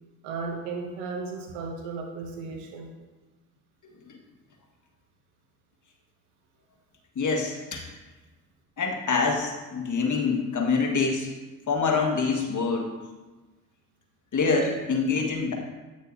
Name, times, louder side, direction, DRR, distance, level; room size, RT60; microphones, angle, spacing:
voice 1, 0.2-2.9, right 4 dB, 85° right, 1 dB, 1.1 m, -35 dB
voice 2, 7.1-7.8 8.8-11.3 11.7-12.9 14.3-15.5, left 4 dB, 40° left, 1 dB, 1.6 m, -25 dB
9.5 x 6.3 x 2.7 m, 1.2 s
hypercardioid pair, 60°, 47 cm